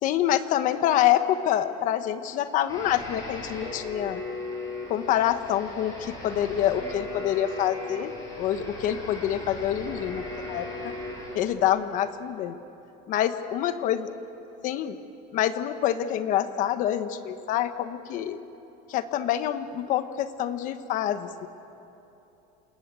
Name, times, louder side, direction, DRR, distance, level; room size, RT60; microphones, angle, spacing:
voice 1, 0.0-4.2 4.9-8.1 8.4-11.0 11.3-12.6 13.1-14.1 14.6-15.0 15.3-18.4 18.9-21.5, left 11 dB, 40° left, 10 dB, 1.1 m, -26 dB
sound 1, 2.7-11.3, left 2 dB, 15° left, 7.5 m, -38 dB
28.0 x 20.5 x 9.0 m, 3.0 s
cardioid pair, 175°, 21 cm